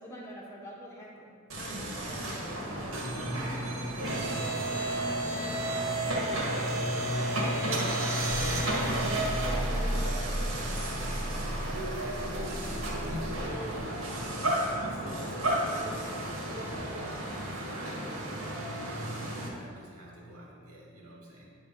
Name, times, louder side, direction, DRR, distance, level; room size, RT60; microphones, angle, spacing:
voice 1, 0.0-2.3 2.5-3.0, equal, 15° left, -5 dB, 1.2 m, -46 dB
sound 1, 1.5-19.5, right 1 dB, 70° right, 1.6 m, -31 dB
voice 2, 3.0-4.1 6.7-12.6 13.1-18.1 18.9-21.6, equal, 85° right, -4 dB, 2.0 m, -45 dB
10.0 x 3.5 x 5.2 m, 2.1 s
head